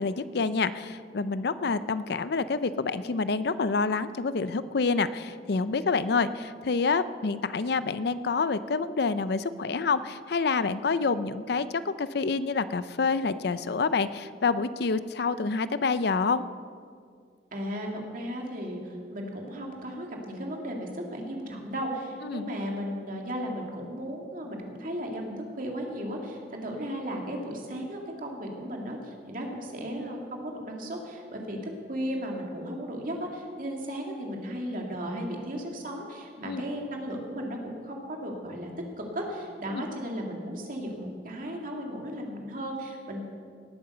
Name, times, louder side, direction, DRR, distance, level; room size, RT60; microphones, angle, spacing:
voice 1, 0.0-16.4 22.2-22.5 36.4-36.6 39.7-39.8, left 4 dB, 65° left, 14 dB, 0.5 m, -27 dB
voice 2, 17.5-38.7 39.1-43.2, equal, 50° right, 0 dB, 2.6 m, -35 dB
18.5 x 8.9 x 6.8 m, 2.1 s
head